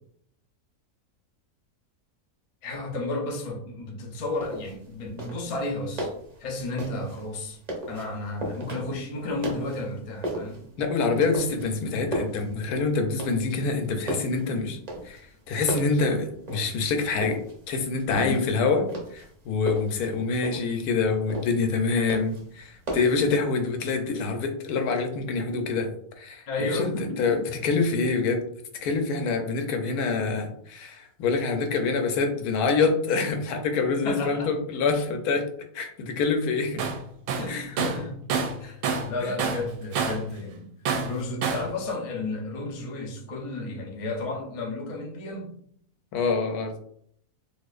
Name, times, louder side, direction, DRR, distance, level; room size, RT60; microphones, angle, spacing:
voice 1, 2.6-6.1 6.4-7.6 7.9-10.6 18.2-18.5 26.5-27.3 34.0-34.5 37.3-38.2 38.6-38.8 39.1-40.7 41.0-45.5, left 2 dB, 50° left, 0 dB, 0.4 m, -32 dB
sound 1, 4.1-23.3, right 1 dB, 40° right, 0.6 m, -37 dB
voice 2, 10.8-14.8 15.0-15.2 15.5-17.4 17.7-18.8 19.1-25.9 26.2-26.9 27.2-28.4 28.8-35.4 35.7-36.9 37.5-37.7 39.2-39.3 46.1-46.8, left 4 dB, 80° left, 5 dB, 1.1 m, -26 dB
Tools, 36.8-37.0 37.3-39.1 39.4-40.3 40.9-41.7, right 5 dB, 70° right, 0.9 m, -27 dB
4.2 x 2.5 x 2.4 m, 0.66 s
omnidirectional pair, 1.6 m